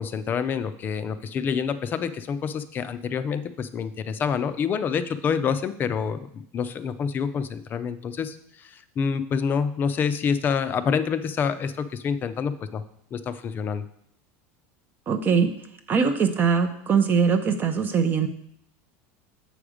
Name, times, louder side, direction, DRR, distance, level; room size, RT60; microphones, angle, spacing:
voice 1, 0.0-12.8 13.1-13.8, left 6 dB, 30° left, 11 dB, 0.5 m, -27 dB
voice 2, 15.1-15.5 15.9-18.3, right 6 dB, 25° right, 7 dB, 0.5 m, -21 dB
7.8 x 5.0 x 4.9 m, 0.69 s
supercardioid pair, 145°, 7 cm